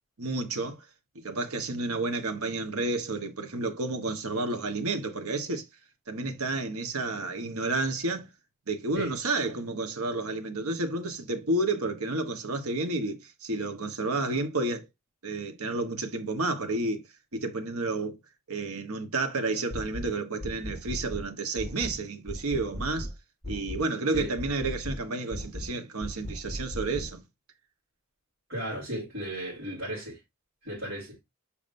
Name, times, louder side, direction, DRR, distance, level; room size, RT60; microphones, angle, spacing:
voice 1, 0.2-0.8 1.1-5.6 6.1-8.3 8.7-14.8 15.2-17.0 17.3-18.2 18.5-23.1 23.5-27.2, right 2 dB, 80° right, 1.3 m, -31 dB
sound 1, 19.7-20.1 20.4-21.3 21.6-22.0 22.3-23.1 23.4-23.8 24.1-25.0 25.3-25.7 26.0-27.1, equal, 5° left, 1.9 m, -37 dB
voice 2, 28.5-30.2 30.6-31.2, right 1 dB, 60° right, 3.6 m, -35 dB
7.2 x 5.0 x 2.6 m
head